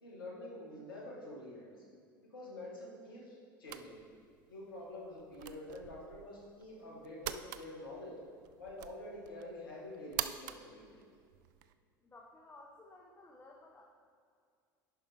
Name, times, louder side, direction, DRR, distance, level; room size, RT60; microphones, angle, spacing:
voice 1, 0.0-1.8 2.3-4.0 4.5-8.1 8.6-11.0, left 1 dB, 80° left, -4 dB, 2.0 m, -47 dB
sound 1, 3.7-11.7, right 12 dB, 65° right, 0.4 m, -46 dB
voice 2, 12.0-13.8, left 2 dB, 20° left, -1 dB, 0.9 m, -56 dB
10.0 x 5.7 x 3.6 m, 2.2 s
hypercardioid pair, 75°, 11 cm